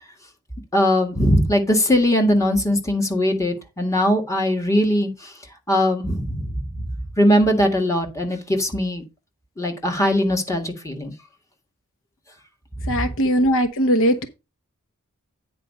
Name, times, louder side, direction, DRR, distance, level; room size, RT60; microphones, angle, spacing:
voice 1, 0.7-5.1 5.7-6.8 7.2-9.0 9.6-11.1 12.9-13.0, equal, 15° left, 1.7 m, -20 dB
voice 2, 12.9-14.2, equal, 65° left, 0.9 m, -19 dB
9.1 x 4.7 x 5.3 m
head